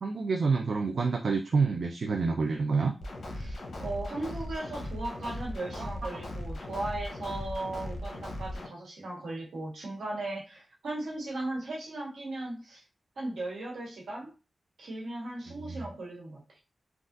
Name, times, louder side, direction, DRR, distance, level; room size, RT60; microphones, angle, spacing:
voice 1, 0.0-2.9 5.8-5.9 15.5-15.9, right 4 dB, 75° right, 3 dB, 0.4 m, -28 dB
sound 1, 3.0-8.7, left 1 dB, 80° left, 0.7 m, -38 dB
voice 2, 3.4-12.8 13.2-14.3 14.8-16.4, right 2 dB, 90° right, -4 dB, 1.3 m, -37 dB
3.4 x 2.4 x 2.6 m, 0.32 s
cardioid pair, 45°, 0 cm